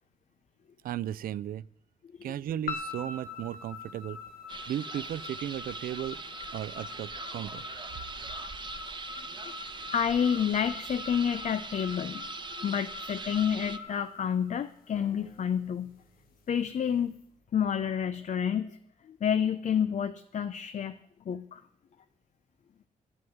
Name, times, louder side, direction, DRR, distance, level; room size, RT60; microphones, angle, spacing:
voice 1, 0.8-1.7 2.2-4.2 4.7-6.2 6.5-7.6, right 11 dB, 85° right, 19 dB, 0.5 m, -35 dB
sound 1, 2.7-15.0, left 5 dB, 90° left, 1.4 m, -43 dB
sound 2, 4.5-13.8, right 4 dB, 35° right, 0.9 m, -42 dB
voice 2, 9.9-12.3 12.6-15.9 16.5-17.2 17.5-18.8 19.0-21.0 21.3-21.6, left 8 dB, 55° left, 11 dB, 0.6 m, -29 dB
sound 3, 15.0-18.2, left 1 dB, 10° left, 2.4 m, -60 dB
11.0 x 9.6 x 9.3 m, 0.70 s
cardioid pair, 95°, 15 cm